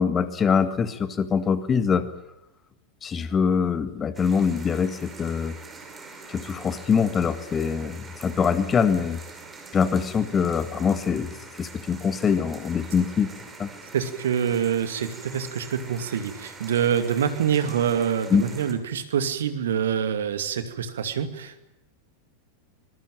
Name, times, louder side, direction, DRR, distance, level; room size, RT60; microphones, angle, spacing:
voice 1, 0.0-2.1 3.0-5.5 6.3-9.2 9.7-11.3 11.6-13.3 13.6-13.7 18.3-18.4, left 6 dB, 20° left, 11 dB, 1.8 m, -23 dB
sound 1, 4.1-18.7, right 3 dB, 15° right, 5.6 m, -44 dB
voice 2, 13.9-21.7, right 8 dB, 60° right, 9 dB, 2.4 m, -26 dB
25.0 x 21.5 x 9.0 m, 0.87 s
figure-of-eight pair, 90°, 0 cm